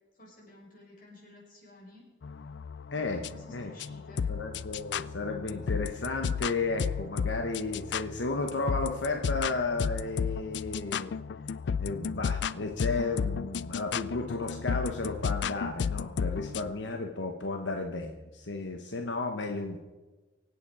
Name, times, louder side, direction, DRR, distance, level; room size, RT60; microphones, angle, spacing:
voice 1, 0.1-2.1 3.3-4.2, left 1 dB, 50° left, -3 dB, 6.1 m, -53 dB
sound 1, 2.2-16.7, left 6 dB, 70° left, 0.4 m, -34 dB
voice 2, 2.9-3.7 4.3-11.1 11.5-19.8, left 3 dB, 90° left, 4 dB, 1.1 m, -33 dB
24.5 x 8.5 x 4.8 m, 1.2 s
head